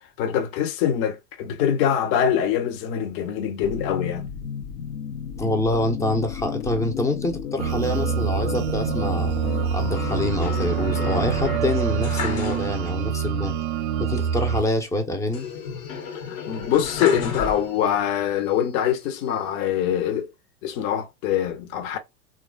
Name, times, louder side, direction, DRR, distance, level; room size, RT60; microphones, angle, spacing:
voice 1, 0.2-4.2 16.3-20.3 20.6-22.0, left 9 dB, 45° left, 0.7 m, -24 dB
sound 1, 3.6-11.6, left 7 dB, 80° left, 0.7 m, -32 dB
voice 2, 5.4-9.3 9.7-13.6 14.0-15.5, left 1 dB, 5° left, 0.4 m, -26 dB
sound 2, 7.6-14.6, right 8 dB, 50° right, 0.6 m, -26 dB
sound 3, 10.1-13.1 13.4-13.5 15.3-18.1 18.6-19.4, left 5 dB, 65° left, 1.0 m, -33 dB
3.1 x 2.3 x 2.3 m
hypercardioid pair, 95°, 44 cm